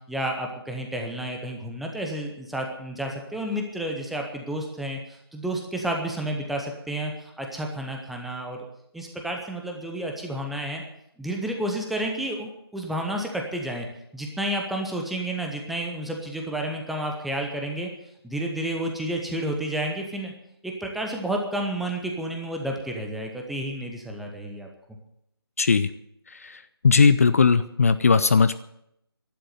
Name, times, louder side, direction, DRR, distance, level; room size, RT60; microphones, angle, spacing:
voice 1, 0.1-5.0 5.3-8.6 8.9-10.8 11.2-13.9 14.1-17.9 18.2-20.3 20.6-24.7, right 1 dB, ahead, 1 dB, 0.7 m, -30 dB
voice 2, 25.6-25.9 26.3-28.5, left 5 dB, 35° left, 12 dB, 0.5 m, -19 dB
11.5 x 10.0 x 9.3 m, 0.75 s
figure-of-eight pair, 155°, 13 cm